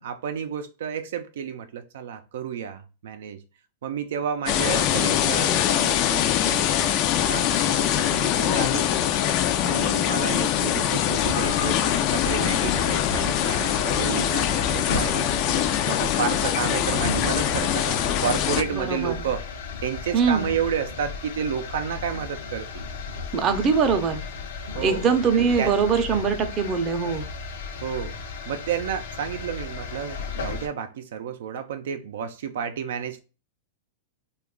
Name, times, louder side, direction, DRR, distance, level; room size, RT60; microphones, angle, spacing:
voice 1, 0.0-3.4 3.8-8.9 9.6-15.3 15.8-19.4 19.8-22.8 24.7-25.1 25.3-25.7 27.8-28.1 28.5-33.2, right 8 dB, 75° right, 0.4 m, -31 dB
sound 1, 4.5-18.6, left 11 dB, 45° left, 0.3 m, -23 dB
sound 2, 11.2-30.7, left 4 dB, 75° left, 0.7 m, -34 dB
voice 2, 18.8-19.2 20.1-20.5 23.3-24.2 24.8-27.3, right 5 dB, 30° right, 0.6 m, -22 dB
3.0 x 2.3 x 3.6 m
hypercardioid pair, 135°, 0 cm